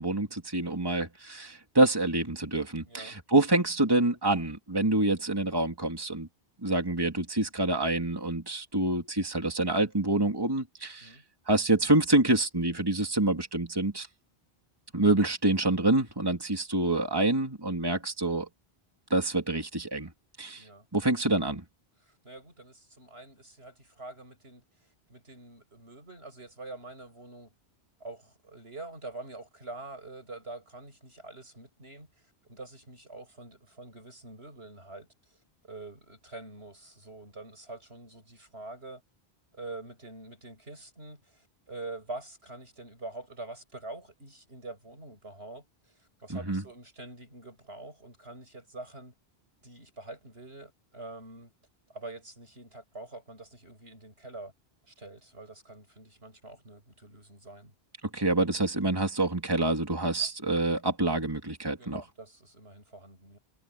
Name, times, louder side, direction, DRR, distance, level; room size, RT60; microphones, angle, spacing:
voice 1, 0.0-6.3 6.6-11.1 11.5-14.1 14.9-18.5 19.1-20.1 20.4-20.6 20.9-21.6 46.3-46.6 58.1-62.0, right 2 dB, 20° right, 2.7 m, -27 dB
voice 2, 2.8-3.1 11.0-11.2 20.6-20.8 22.0-24.6 25.1-27.5 28.0-32.1 32.4-35.4 35.6-39.0 39.5-49.1 49.6-51.5 51.9-54.5 54.9-57.7 60.1-60.3 61.8-63.4, right 2 dB, 80° right, 8.5 m, -45 dB
omnidirectional pair, 1.1 m